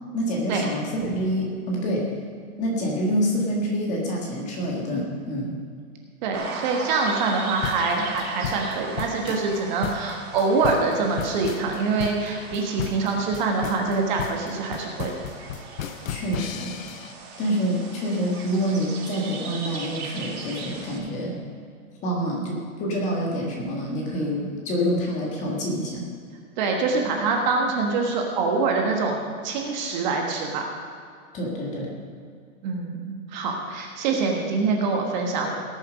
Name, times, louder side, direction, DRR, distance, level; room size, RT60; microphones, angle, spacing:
voice 1, 0.1-2.1 2.6-5.5 16.1-16.7 17.4-21.3 22.0-26.0 31.3-32.0, equal, 15° left, -1 dB, 1.7 m, -27 dB
voice 2, 6.2-15.1 26.6-30.6 32.6-35.5, right 4 dB, 30° right, 1 dB, 1.4 m, -25 dB
sound 1, 6.3-21.0, right 4 dB, 90° right, 3.3 m, -38 dB
sound 2, 7.6-17.1, left 8 dB, 65° left, 0.8 m, -34 dB
18.5 x 7.2 x 5.2 m, 2.2 s
hypercardioid pair, 165°, 43 cm